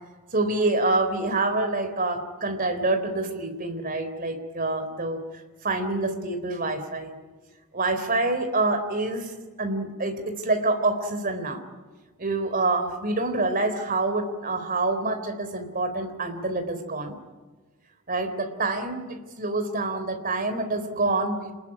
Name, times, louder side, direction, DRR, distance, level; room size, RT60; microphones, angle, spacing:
voice 1, 0.3-5.2 5.6-7.1 7.7-9.3 9.6-11.6 12.2-17.1 18.1-21.5, right 2 dB, 40° right, 7 dB, 3.8 m, -26 dB
29.0 x 20.0 x 10.0 m, 1.3 s
head